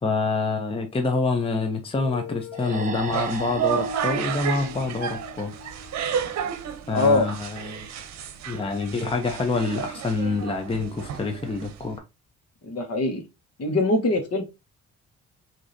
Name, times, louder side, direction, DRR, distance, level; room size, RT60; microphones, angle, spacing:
voice 1, 0.0-5.5 6.9-7.9 8.5-12.0, left 3 dB, 20° left, 0.7 m, -26 dB
Guitar, 2.0-8.6, left 6 dB, 40° left, 2.2 m, -43 dB
sound 1, 2.5-6.0, right 3 dB, 25° right, 1.0 m, -37 dB
sound 2, 2.9-12.0, right 9 dB, 60° right, 0.8 m, -32 dB
voice 2, 6.9-7.3 12.7-13.2 13.6-14.4, left 2 dB, 55° left, 1.4 m, -22 dB
6.0 x 2.9 x 2.7 m
cardioid pair, 90°, 30 cm